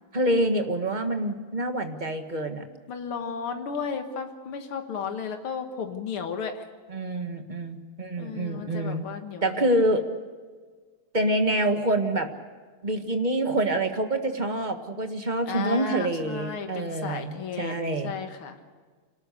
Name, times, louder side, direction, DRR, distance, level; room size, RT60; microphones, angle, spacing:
voice 1, 0.1-2.6 6.9-9.1 9.4-10.1 11.1-12.3 12.8-18.1, right 1 dB, 25° right, 6 dB, 1.5 m, -26 dB
voice 2, 2.9-6.6 8.2-9.6 15.5-18.6, left 6 dB, 85° left, 6 dB, 2.4 m, -34 dB
26.0 x 19.0 x 6.6 m, 1.5 s
omnidirectional pair, 2.3 m